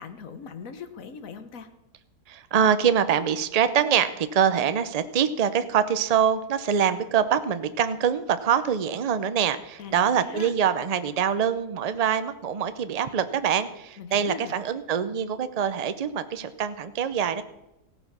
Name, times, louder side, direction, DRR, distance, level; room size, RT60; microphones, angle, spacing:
voice 1, 0.0-1.7 9.8-10.5 14.0-14.5, left 6 dB, 60° left, 10 dB, 1.5 m, -40 dB
voice 2, 2.3-17.4, right 8 dB, 55° right, 12 dB, 0.4 m, -24 dB
16.0 x 8.9 x 6.0 m, 0.95 s
omnidirectional pair, 1.7 m